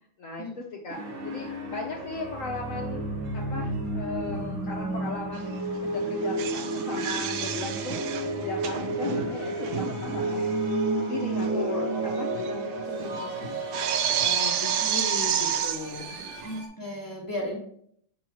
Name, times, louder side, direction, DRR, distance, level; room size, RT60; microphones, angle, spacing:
voice 1, 0.2-3.1 3.3-5.5 5.8-8.0 8.4-13.5 14.2-16.2, left 3 dB, 80° left, -1 dB, 0.7 m, -37 dB
sound 1, 0.9-16.7, right 2 dB, 65° right, 2.1 m, -32 dB
sound 2, 5.3-5.6 5.9-10.5 10.7-10.8 11.4-11.5 11.8-16.6, right 8 dB, 80° right, 0.9 m, -30 dB
voice 2, 16.4-17.6, equal, 25° left, -3 dB, 0.4 m, -34 dB
6.9 x 4.6 x 3.0 m, 0.66 s
omnidirectional pair, 2.4 m